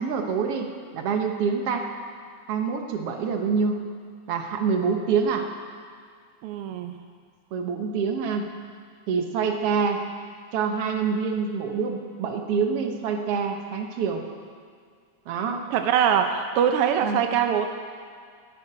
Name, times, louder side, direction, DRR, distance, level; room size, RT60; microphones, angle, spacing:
voice 1, 0.0-1.9 2.5-3.8 4.3-5.5 7.5-8.5 9.1-10.0 10.5-14.2 15.3-15.6 17.0-17.2, right 5 dB, 60° right, 4 dB, 1.9 m, -26 dB
voice 2, 6.4-6.9 15.7-17.7, right 8 dB, 75° right, 6 dB, 1.3 m, -23 dB
10.5 x 9.3 x 9.9 m, 2.1 s
omnidirectional pair, 3.3 m